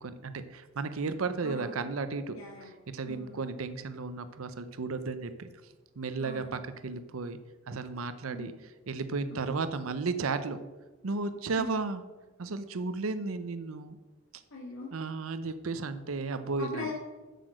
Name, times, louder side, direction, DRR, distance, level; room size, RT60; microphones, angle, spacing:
voice 1, 0.0-5.5 6.0-7.4 7.7-8.5 8.9-10.6 11.0-12.0 12.4-14.0 14.9-16.9, right 4 dB, 90° right, 11 dB, 0.6 m, -34 dB
voice 2, 1.4-1.8 2.3-2.7 3.1-3.4 6.2-6.5 8.3-8.5 9.5-9.6 11.6-11.7 14.5-14.9 16.6-16.9, left 2 dB, 85° left, -3 dB, 1.9 m, -41 dB
7.6 x 6.8 x 6.3 m, 1.2 s
head